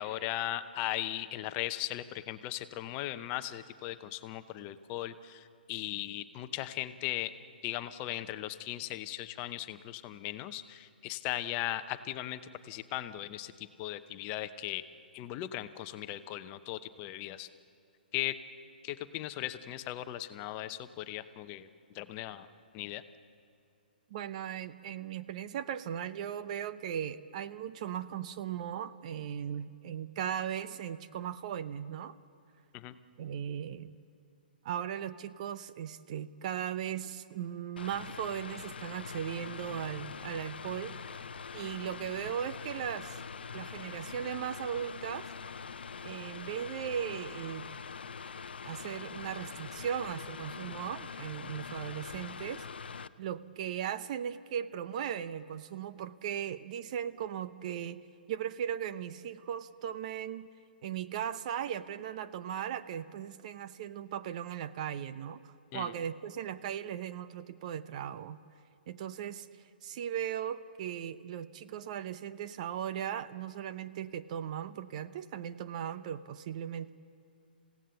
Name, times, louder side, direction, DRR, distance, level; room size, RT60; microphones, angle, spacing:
voice 1, 0.0-7.3 7.6-14.8 15.1-17.5 18.1-18.4 18.8-21.7 21.9-22.5 22.7-23.0 32.7-32.9 65.7-65.9, left 14 dB, 30° left, 11 dB, 0.8 m, -38 dB
voice 2, 24.1-32.1 33.2-34.0 34.6-41.0 41.5-43.2 43.5-45.3 46.0-47.7 48.6-52.6 53.2-58.0 58.3-60.5 60.8-68.4 68.9-69.5 69.8-76.9, right 9 dB, 45° right, 13 dB, 0.7 m, -37 dB
Mechanical fan, 37.8-53.1, left 5 dB, 75° left, 0.6 m, -43 dB
27.5 x 16.5 x 6.9 m, 2.4 s
hypercardioid pair, 135°, 5 cm